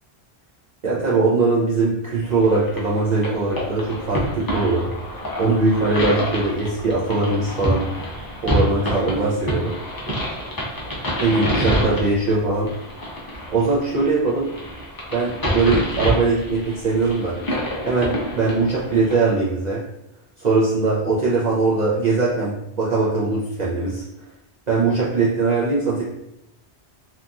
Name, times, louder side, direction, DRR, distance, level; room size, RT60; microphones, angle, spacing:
voice 1, 0.8-7.9 8.4-9.8 11.2-12.7 13.5-14.5 15.1-17.3 17.9-19.8 20.4-24.0 24.7-26.0, right 3 dB, 50° right, -7 dB, 0.5 m, -21 dB
sound 1, 2.4-19.2, equal, 30° left, 0.5 m, -27 dB
2.8 x 2.5 x 2.3 m, 0.82 s
omnidirectional pair, 1.1 m